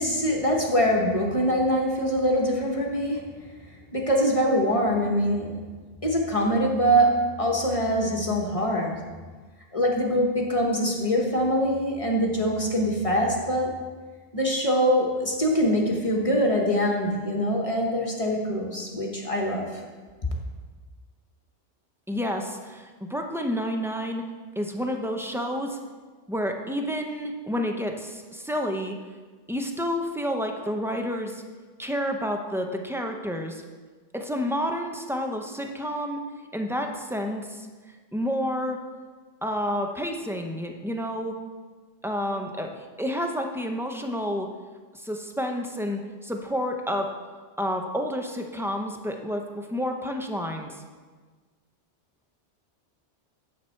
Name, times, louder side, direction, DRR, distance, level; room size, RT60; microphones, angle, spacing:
voice 1, 0.0-3.3 3.9-5.6 6.0-9.0 9.7-13.8 14.3-19.8, equal, 30° left, 0 dB, 1.1 m, -24 dB
voice 2, 22.1-24.2 24.6-25.8 26.3-29.0 29.5-31.4 31.8-33.6 34.1-36.2 36.5-37.7 38.1-38.8 39.4-41.4 42.0-44.5 44.9-47.1 47.6-50.8, equal, 5° right, 3 dB, 0.5 m, -29 dB
9.2 x 7.4 x 4.5 m, 1.4 s
omnidirectional pair, 1.2 m